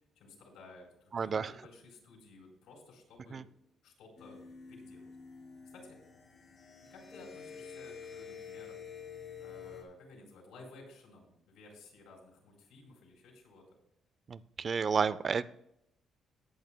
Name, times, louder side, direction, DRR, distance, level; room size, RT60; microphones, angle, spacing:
voice 1, 0.2-3.5 3.8-4.4 4.7-5.0 5.6-6.0 6.9-8.8 9.4-13.8, left 2 dB, 90° left, 0 dB, 4.3 m, -55 dB
voice 2, 1.1-1.5 3.3-3.4 14.3-15.5, right 6 dB, 35° right, 16 dB, 0.4 m, -31 dB
sound 1, 4.2-9.8, left 6 dB, 35° left, 1.9 m, -48 dB
18.5 x 8.5 x 2.3 m, 0.78 s
cardioid pair, 145°, 0 cm